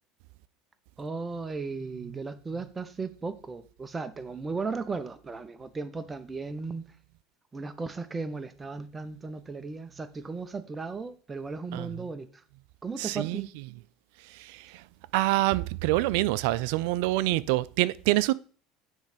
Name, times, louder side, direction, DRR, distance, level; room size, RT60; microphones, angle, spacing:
voice 1, 1.0-6.8 7.5-12.4 12.8-13.5, right 4 dB, 20° right, 0.7 m, -36 dB
voice 2, 11.7-12.0 13.0-13.6 14.2-14.8 15.1-18.3, right 18 dB, 75° right, 0.4 m, -27 dB
9.2 x 3.2 x 5.0 m
supercardioid pair, 100°, 0 cm